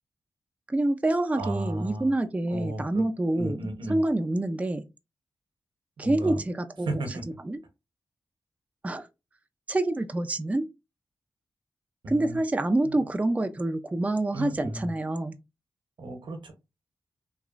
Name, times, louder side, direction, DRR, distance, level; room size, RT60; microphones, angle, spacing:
voice 1, 0.7-3.6 3.9-4.8 6.0-6.9 7.5-7.6 8.8-9.1 9.7-10.7 12.1-15.4, right 2 dB, 15° right, 0.4 m, -27 dB
voice 2, 1.3-2.1 2.5-3.0 3.3-4.0 6.0-6.4 6.8-7.2 12.0-12.4 12.8-13.0 14.3-14.9 16.0-16.5, right 1 dB, 75° right, 0.8 m, -34 dB
3.0 x 2.4 x 2.4 m
cardioid pair, 40°, 8 cm